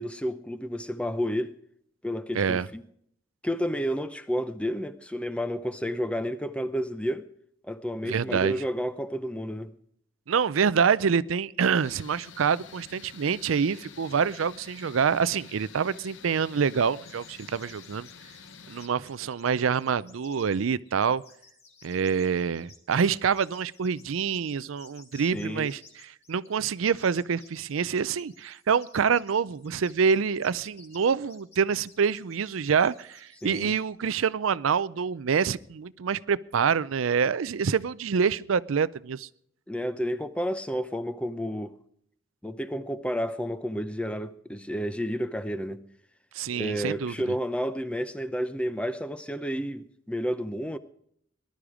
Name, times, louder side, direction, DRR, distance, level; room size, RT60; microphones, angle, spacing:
voice 1, 0.0-1.5 2.0-2.8 3.4-7.2 7.6-9.7 25.1-25.7 33.4-33.7 39.7-41.7 42.4-45.8 46.5-50.8, equal, 5° left, 0.6 m, -31 dB
voice 2, 2.3-2.7 8.0-8.6 10.3-18.1 18.7-21.2 21.8-25.8 26.3-39.3 46.3-47.1, right 6 dB, 90° right, 0.5 m, -26 dB
sound 1, 11.8-18.9, left 6 dB, 70° left, 1.0 m, -49 dB
sound 2, 17.0-33.8, left 4 dB, 30° left, 2.3 m, -56 dB
19.5 x 12.0 x 4.9 m
head